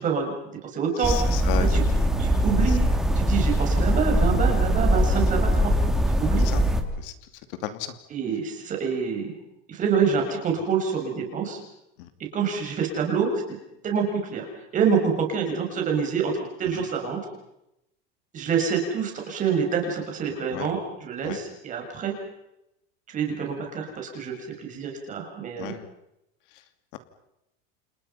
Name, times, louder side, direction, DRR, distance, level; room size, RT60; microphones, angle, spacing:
voice 1, 0.0-0.3 0.6-1.1 1.7-1.8 2.2-5.7 6.1-6.5 8.1-9.3 9.7-11.6 12.3-13.6 13.8-14.5 14.7-16.3 16.6-17.2 18.3-22.1 23.1-25.7, right 6 dB, 25° right, 2 dB, 6.6 m, -26 dB
voice 2, 1.0-2.1 2.7-2.8 5.1-5.2 6.4-6.6 7.0-7.1 7.6-7.9 12.0-12.1 16.6-16.9 20.5-20.7 21.2-21.4 25.6-25.9 26.9-27.0, left 12 dB, 60° left, 9 dB, 2.8 m, -34 dB
sound 1, 1.0-6.8, equal, ahead, 2.1 m, -21 dB
29.5 x 29.0 x 5.8 m, 0.86 s
supercardioid pair, 170°, 30 cm